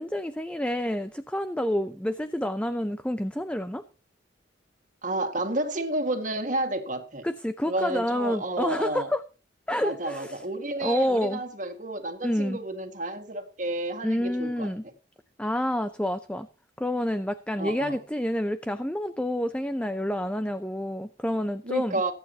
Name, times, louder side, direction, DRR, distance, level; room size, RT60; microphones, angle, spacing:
voice 1, 0.0-3.8 7.2-9.2 9.7-10.4 10.8-11.4 12.2-12.6 14.0-14.8 15.4-16.5 16.8-22.0, left 1 dB, 5° left, 0.6 m, -28 dB
voice 2, 5.0-7.3 7.7-9.1 9.8-14.7 17.6-18.0 21.6-22.1, right 1 dB, 40° right, 1.9 m, -31 dB
23.0 x 9.0 x 2.9 m
head